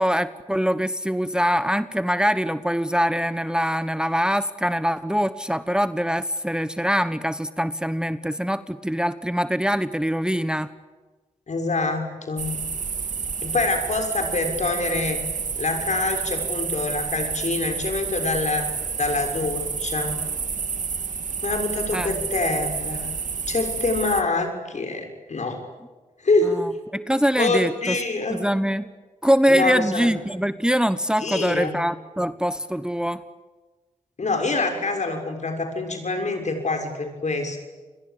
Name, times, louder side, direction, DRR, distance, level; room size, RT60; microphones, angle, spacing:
voice 1, 0.0-10.7 21.9-22.1 26.5-28.0 28.3-28.8 29.2-33.2, equal, 5° right, 13 dB, 1.2 m, -23 dB
voice 2, 11.5-12.5 13.4-15.2 15.5-18.7 19.0-20.2 21.4-23.1 23.5-25.6 26.2-26.6 27.4-28.4 29.5-30.1 31.2-31.8 34.2-37.6, left 3 dB, 60° left, 5 dB, 6.7 m, -25 dB
sound 1, 12.4-24.2, right 5 dB, 65° right, 2.3 m, -29 dB
29.0 x 22.5 x 8.8 m, 1.3 s
cardioid pair, 50°, 14 cm